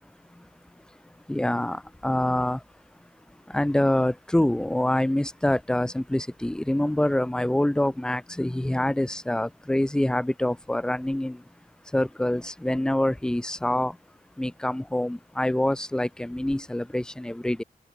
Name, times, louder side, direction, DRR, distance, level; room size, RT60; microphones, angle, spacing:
voice 1, 0.2-17.6, left 1 dB, 5° left, 0.3 m, -26 dB
wide cardioid pair, 135°, 16 cm